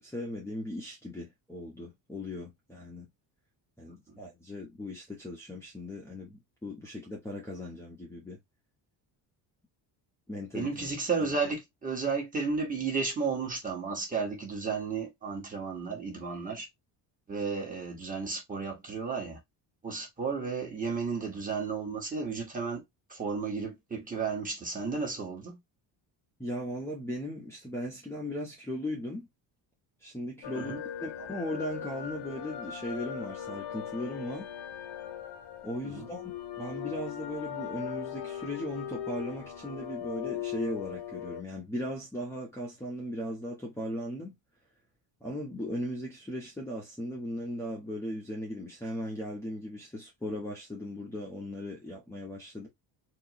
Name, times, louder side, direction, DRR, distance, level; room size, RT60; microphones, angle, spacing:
voice 1, 0.0-3.1 3.8-8.4 10.3-10.7 11.2-11.3 26.4-29.3 30.0-34.5 35.6-36.3 36.6-44.3 45.2-52.7, equal, 5° left, 0.9 m, -38 dB
voice 2, 10.5-16.7 17.3-19.4 19.8-22.8 23.1-25.6 30.5-30.8 35.8-36.1, right 4 dB, 15° right, 1.5 m, -33 dB
sound 1, 30.4-41.4, left 9 dB, 60° left, 1.1 m, -39 dB
4.4 x 3.0 x 3.0 m
cardioid pair, 175°, 45 cm